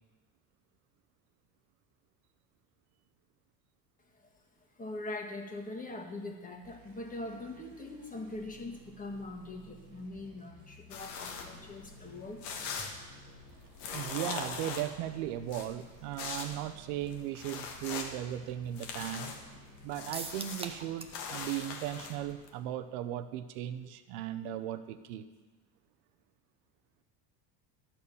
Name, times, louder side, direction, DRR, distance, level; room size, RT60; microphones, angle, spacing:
voice 1, 4.8-12.4, left 2 dB, 15° left, 1 dB, 1.6 m, -42 dB
sound 1, 6.6-20.4, right 1 dB, 40° right, 1.8 m, -57 dB
sound 2, 10.9-22.5, left 5 dB, 80° left, 1.5 m, -42 dB
voice 2, 13.9-19.3 19.8-25.2, right 12 dB, 70° right, 10 dB, 0.7 m, -37 dB
sound 3, 20.1-21.2 21.5-21.6 21.9-22.0, right 3 dB, 10° right, 0.8 m, -41 dB
13.0 x 4.3 x 7.0 m, 1.3 s
supercardioid pair, 90°, 48 cm